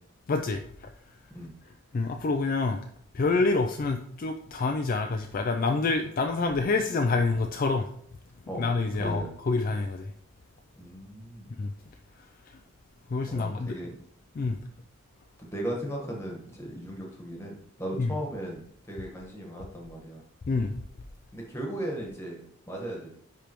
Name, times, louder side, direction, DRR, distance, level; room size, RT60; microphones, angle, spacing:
voice 1, 0.3-0.9 1.9-2.8 3.1-7.9 8.6-10.1 11.6-11.7 12.2-12.6 13.1-13.8 14.4-14.6 18.0-18.1 20.5-20.8, left 3 dB, 40° left, 5 dB, 0.3 m, -27 dB
voice 2, 10.7-11.5 13.3-13.9 15.4-20.2 21.3-23.1, right 1 dB, 10° left, -1 dB, 1.3 m, -37 dB
9.9 x 3.4 x 3.0 m, 0.64 s
head